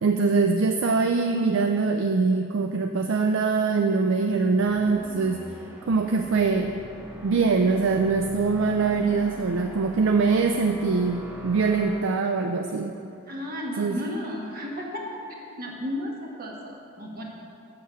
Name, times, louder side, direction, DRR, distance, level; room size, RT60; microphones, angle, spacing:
voice 1, 0.0-5.4 5.8-6.7 7.2-12.9 13.8-14.0, right 4 dB, 60° right, 5 dB, 0.4 m, -23 dB
sound 1, 4.3-12.0, equal, 10° right, 0.7 m, -42 dB
voice 2, 13.3-15.1 15.6-17.2, left 1 dB, 40° right, -1 dB, 1.2 m, -33 dB
7.0 x 6.7 x 5.6 m, 2.7 s
head